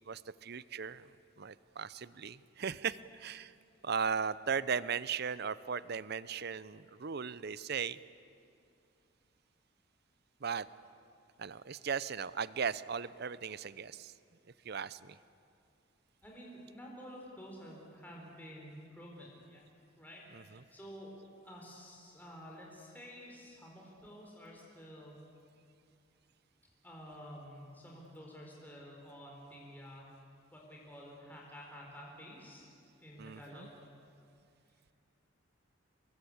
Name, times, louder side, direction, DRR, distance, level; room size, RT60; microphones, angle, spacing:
voice 1, 0.1-1.1 1.4-3.5 3.8-8.0 10.4-10.7 11.4-14.1 14.6-15.2 20.3-20.6 33.2-33.7, right 6 dB, 50° right, 17 dB, 0.6 m, -37 dB
voice 2, 16.2-19.6 20.0-21.1 21.4-25.2 26.8-30.1 30.5-32.7 33.0-33.8, equal, 10° left, -3 dB, 4.3 m, -50 dB
27.5 x 21.5 x 8.6 m, 2.4 s
head